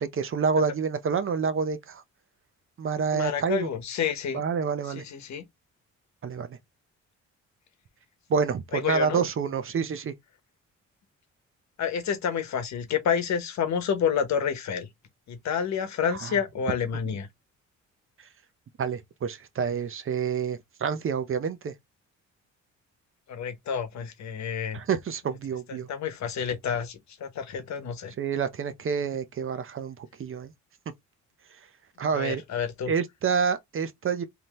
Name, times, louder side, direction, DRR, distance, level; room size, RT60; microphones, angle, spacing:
voice 1, 0.0-2.0 2.8-3.7 4.3-5.0 6.2-6.6 8.3-10.1 16.2-16.4 18.8-21.7 24.7-25.9 28.2-30.5 32.0-32.4 32.9-34.2, right 6 dB, 45° right, 0.7 m, -28 dB
voice 2, 3.1-4.4 5.0-5.4 8.7-9.2 11.8-14.9 15.3-17.3 23.3-24.8 25.9-28.1 32.1-32.9, left 7 dB, 65° left, 1.1 m, -29 dB
3.6 x 2.9 x 3.1 m
cardioid pair, 90°, 30 cm